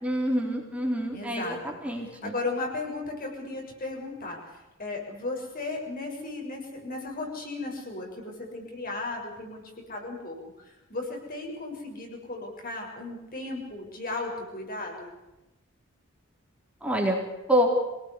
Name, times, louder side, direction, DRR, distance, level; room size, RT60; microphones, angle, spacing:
voice 1, 0.0-2.3 16.8-17.2 17.5-17.8, equal, 5° right, 0 dB, 3.7 m, -26 dB
voice 2, 1.1-1.8 2.2-4.5 4.8-9.6 9.9-10.4 10.6-15.1, left 2 dB, 45° left, 1 dB, 7.1 m, -35 dB
25.0 x 18.5 x 8.4 m, 1.0 s
head